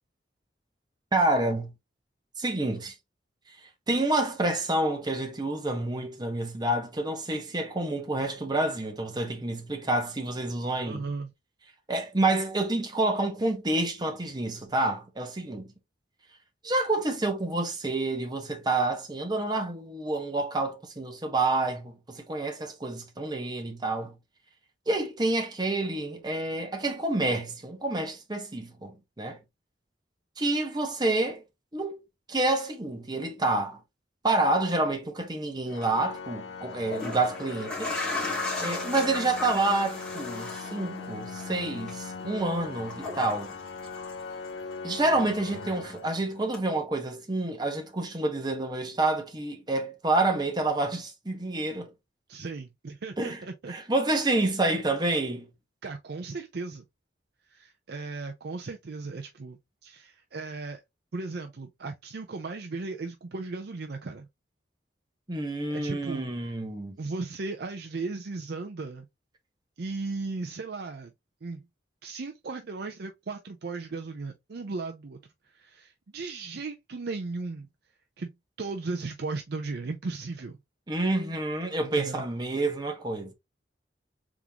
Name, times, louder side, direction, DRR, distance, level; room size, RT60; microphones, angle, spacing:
voice 1, 1.1-1.7 2.4-2.9 3.9-11.0 11.9-15.7 16.6-24.1 24.9-29.4 30.4-31.4 31.7-32.0 32.3-33.8 34.2-37.9 38.6-43.5 44.8-51.9 53.2-53.4 53.7-55.5 65.3-67.0 80.9-83.3, right 2 dB, 25° right, 1.0 m, -28 dB
voice 2, 10.8-11.3 52.3-53.8 55.8-56.8 57.5-60.8 61.1-64.3 65.7-66.3 67.0-69.1 69.8-71.1 71.4-71.6 72.0-75.2 75.4-77.7 78.2-78.3 78.6-80.6 81.8-82.2, right 3 dB, 60° right, 0.5 m, -36 dB
Organ, 35.7-46.6, left 4 dB, 75° left, 0.5 m, -40 dB
sound 1, 35.7-35.9 36.7-44.7 45.0-46.1 46.5-46.6, left 3 dB, 5° left, 1.8 m, -37 dB
3.7 x 3.6 x 2.8 m
head